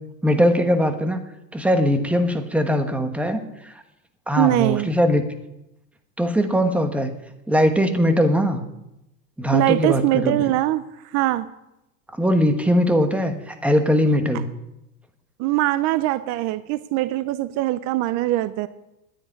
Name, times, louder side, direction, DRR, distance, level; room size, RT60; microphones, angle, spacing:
voice 1, 0.2-1.2 1.5-3.8 4.3-5.2 6.2-7.1 7.5-8.6 9.4-10.4 12.1-14.5, equal, 5° right, 7 dB, 1.2 m, -20 dB
voice 2, 4.4-4.9 9.5-10.8 11.1-11.5 15.4-18.7, right 16 dB, 40° right, 14 dB, 0.6 m, -22 dB
11.0 x 9.9 x 9.8 m, 0.89 s
supercardioid pair, 140°, 43 cm